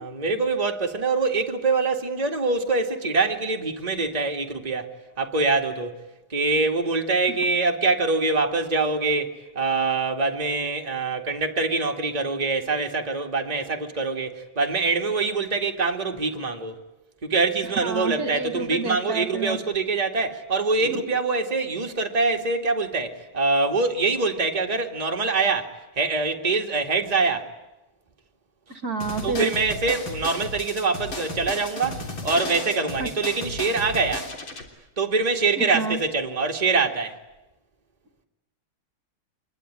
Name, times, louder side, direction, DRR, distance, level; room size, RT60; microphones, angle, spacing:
voice 1, 0.0-6.0 6.3-16.8 17.2-27.5 29.2-34.3 35.0-37.2, right 3 dB, 20° right, 2.1 m, -24 dB
voice 2, 17.8-19.6 20.8-21.0 28.7-29.5 33.0-33.1 35.6-36.0, right 4 dB, 45° right, 2.2 m, -29 dB
sound 1, 29.0-34.6, left 2 dB, 60° left, 4.2 m, -34 dB
26.0 x 22.0 x 10.0 m
omnidirectional pair, 2.4 m